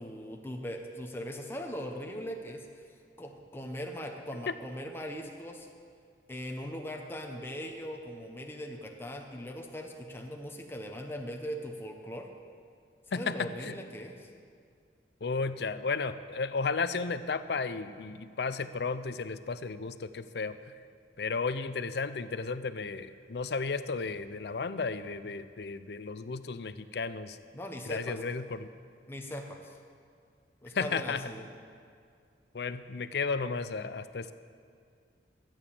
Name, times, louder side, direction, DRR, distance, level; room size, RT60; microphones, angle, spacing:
voice 1, 0.0-2.8 3.2-5.7 6.3-12.3 13.1-14.3 27.5-28.2 29.1-29.8 30.6-31.4, equal, 15° left, 2 dB, 0.9 m, -40 dB
voice 2, 13.1-13.7 15.2-20.6 21.2-27.4 27.9-28.7 30.7-31.2 32.5-34.3, left 4 dB, 65° left, 13 dB, 0.5 m, -33 dB
13.0 x 9.0 x 7.0 m, 2.2 s
head